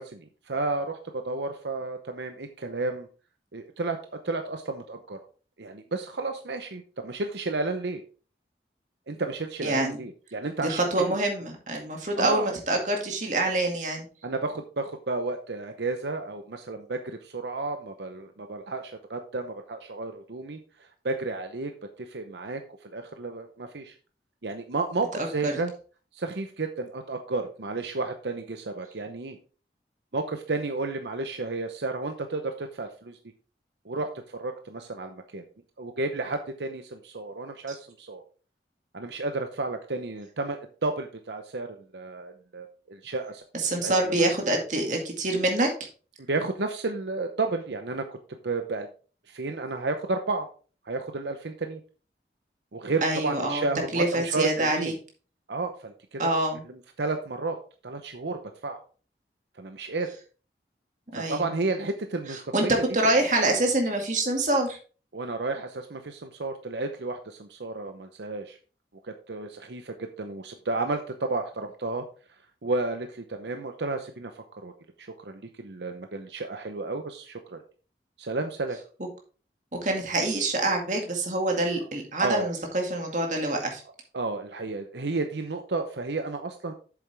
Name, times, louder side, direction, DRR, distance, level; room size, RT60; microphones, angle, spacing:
voice 1, 0.0-3.1 3.5-4.0 4.2-5.2 5.6-8.0 9.1-11.1 12.2-12.6 14.2-20.6 21.0-21.7 22.0-23.9 24.4-25.7 26.1-29.4 30.1-33.2 33.8-35.4 35.8-38.2 38.9-41.7 41.9-43.4 43.8-44.4 46.2-48.1 48.4-48.9 49.3-50.5 50.8-51.8 52.7-55.0 55.5-56.3 56.6-57.6 57.8-58.8 59.6-60.1 61.1-62.8 63.1-63.3 65.1-68.6 69.0-72.1 72.6-74.7 75.0-77.6 78.2-78.8 82.2-82.5 84.1-86.7, right 3 dB, 80° right, 6 dB, 0.8 m, -32 dB
voice 2, 9.6-10.0 10.6-14.1 25.2-25.6 43.6-45.7 53.0-53.7 53.9-54.9 56.2-56.6 61.1-61.5 62.5-62.6 62.9-64.8 79.8-83.8, right 2 dB, 45° right, 2 dB, 2.2 m, -26 dB
8.4 x 7.1 x 3.4 m, 0.37 s
head